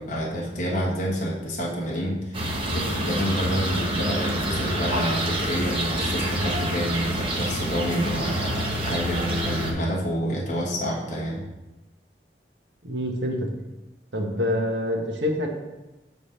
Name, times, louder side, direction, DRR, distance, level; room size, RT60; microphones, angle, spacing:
voice 1, 0.0-11.4, equal, 45° left, -4 dB, 1.5 m, -28 dB
sound 1, 2.3-9.7, right 1 dB, 30° right, 1.1 m, -27 dB
voice 2, 12.8-13.5 14.1-15.5, left 1 dB, 85° right, 1 dB, 1.4 m, -26 dB
6.9 x 4.0 x 6.6 m, 1.0 s
head